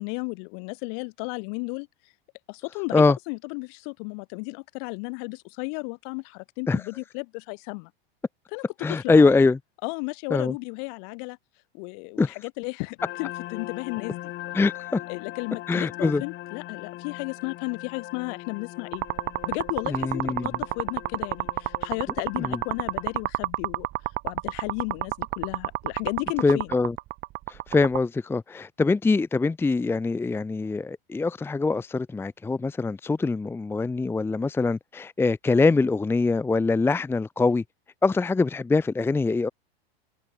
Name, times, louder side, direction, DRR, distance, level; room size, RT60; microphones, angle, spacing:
voice 1, 0.0-1.9 2.5-7.9 8.5-9.3 9.8-11.4 11.7-14.3 15.1-19.0 19.4-23.9 24.2-26.7, left 40 dB or more, 55° left, 4.5 m, -34 dB
voice 2, 8.8-9.6 10.3-10.5 12.2-12.3 14.5-15.0 15.7-16.2 19.9-20.5 22.4-22.6 26.4-26.9 27.5-37.6 38.0-39.5, left 3 dB, 10° left, 0.8 m, -23 dB
sound 1, 13.0-23.2, left 16 dB, 35° left, 2.0 m, -40 dB
sound 2, 18.9-28.0, right 18 dB, 35° right, 1.2 m, -29 dB
supercardioid pair, 140°, 30 cm